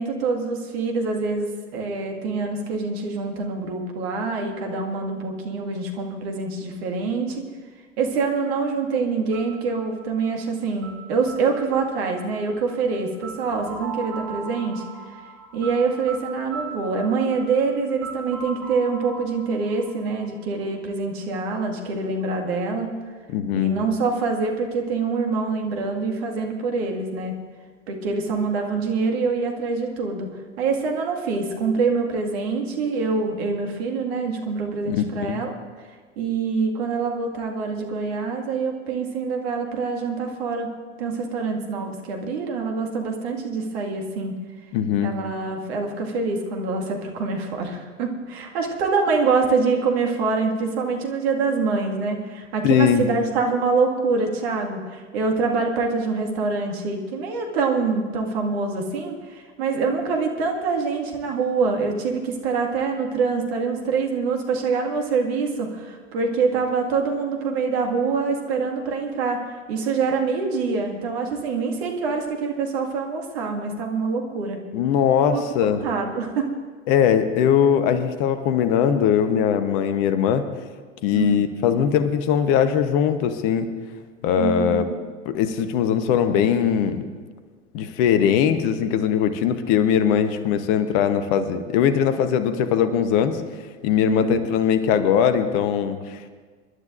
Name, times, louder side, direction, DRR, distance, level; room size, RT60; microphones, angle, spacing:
voice 1, 0.0-7.4 8.0-15.1 15.5-22.9 23.5-27.4 27.9-30.3 30.6-35.9 36.2-40.7 41.0-44.4 45.0-74.6 75.3-75.4 75.8-76.5 81.1-81.5 84.4-85.0 94.0-94.4, right 4 dB, 55° right, 2 dB, 2.1 m, -25 dB
sound 1, 9.3-21.1, right 4 dB, 30° right, 5.2 m, -39 dB
voice 2, 23.3-23.7 34.9-35.0 35.2-35.4 44.7-45.2 52.6-53.0 74.7-75.8 76.9-80.5 81.0-83.7 84.2-84.8 85.3-87.0 87.7-93.4 93.8-96.3, left 8 dB, 45° left, 10 dB, 1.0 m, -20 dB
26.5 x 12.0 x 2.6 m, 1.5 s
figure-of-eight pair, 80°, 38 cm